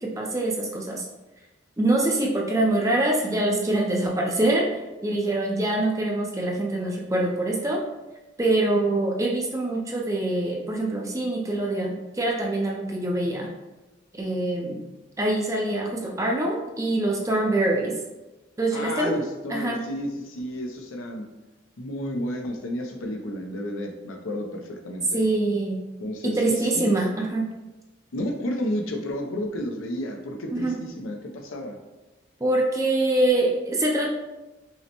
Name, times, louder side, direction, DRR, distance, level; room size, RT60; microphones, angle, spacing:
voice 1, 0.0-1.1 1.8-7.8 8.4-13.5 14.1-14.8 15.2-17.9 18.6-19.1 19.5-19.8 25.1-25.8 26.2-27.4 30.5-30.7 32.4-34.1, right 2 dB, 15° right, -1 dB, 0.5 m, -24 dB
voice 2, 18.7-21.2 21.8-25.2 26.0-26.4 26.8-27.0 28.1-31.8, left 1 dB, 80° left, 3 dB, 0.6 m, -31 dB
5.5 x 2.1 x 2.9 m, 1.1 s
head